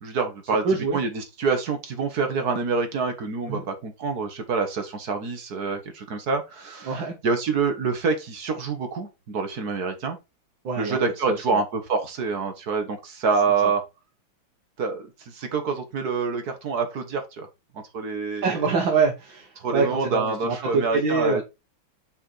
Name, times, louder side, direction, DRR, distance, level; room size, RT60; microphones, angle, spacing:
voice 1, 0.0-0.7 0.9-10.2 10.8-13.9 14.8-17.5 17.9-18.7 19.6-21.4, right 4 dB, 55° right, 1.7 m, -26 dB
voice 2, 0.6-1.0 3.5-3.6 6.9-7.1 10.6-11.0 11.3-11.4 13.6-13.7 18.4-21.4, right 4 dB, 75° right, 2.1 m, -25 dB
6.4 x 4.4 x 4.5 m
omnidirectional pair, 2.1 m